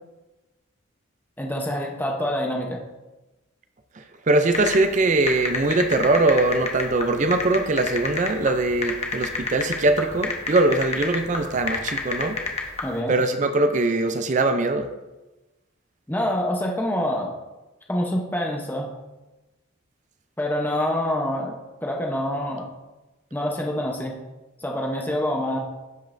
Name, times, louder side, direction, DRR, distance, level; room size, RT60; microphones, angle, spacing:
voice 1, 1.4-2.8 12.8-13.1 16.1-17.3 17.9-18.9 20.4-22.6 23.3-24.2 24.6-25.6, left 1 dB, 10° left, 0 dB, 0.8 m, -26 dB
voice 2, 4.3-12.4 13.1-14.9, right 2 dB, 35° right, 8 dB, 0.4 m, -21 dB
sound 1, 4.5-12.9, left 4 dB, 30° left, 1.0 m, -29 dB
13.0 x 5.2 x 2.6 m, 1.1 s
head